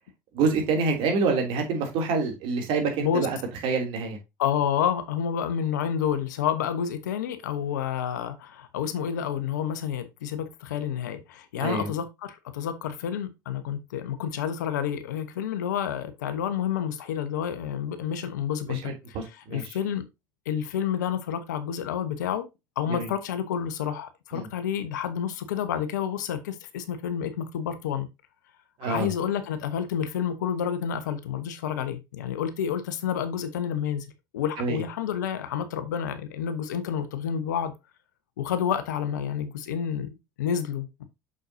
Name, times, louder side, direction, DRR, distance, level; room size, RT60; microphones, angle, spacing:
voice 1, 0.3-3.4 3.6-4.2 11.6-11.9 18.7-19.6 22.9-23.1 24.3-24.5 28.8-29.1 34.6-34.8, right 4 dB, 60° right, 2.9 m, -27 dB
voice 2, 4.4-20.0 20.4-22.5 22.8-28.1 28.8-34.1 34.3-37.7 38.4-41.0, left 8 dB, 75° left, 1.1 m, -29 dB
6.5 x 6.4 x 2.7 m
hypercardioid pair, 75°, 10 cm